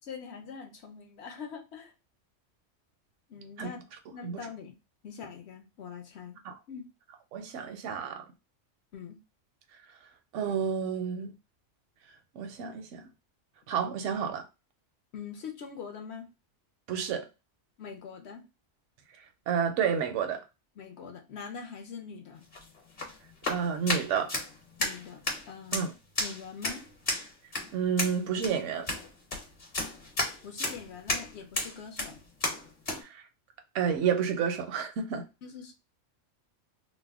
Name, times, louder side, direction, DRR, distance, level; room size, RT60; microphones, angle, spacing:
voice 1, 0.0-1.9 3.3-3.9 4.1-4.7 5.0-6.4 6.7-6.9 8.9-9.2 15.1-16.3 17.8-18.4 20.8-22.4 24.8-25.9 26.2-26.9 30.4-32.2 35.4-35.7, left 6 dB, 65° left, 0.9 m, -43 dB
voice 2, 7.3-8.2 10.3-11.3 12.4-13.0 13.7-14.4 16.9-17.3 19.5-20.4 23.5-24.3 25.7-25.9 27.7-28.9 33.0-33.2 33.7-35.2, right 7 dB, 80° right, 0.9 m, -30 dB
sound 1, 22.4-33.0, left 2 dB, 40° left, 1.0 m, -34 dB
2.6 x 2.1 x 3.4 m
omnidirectional pair, 1.2 m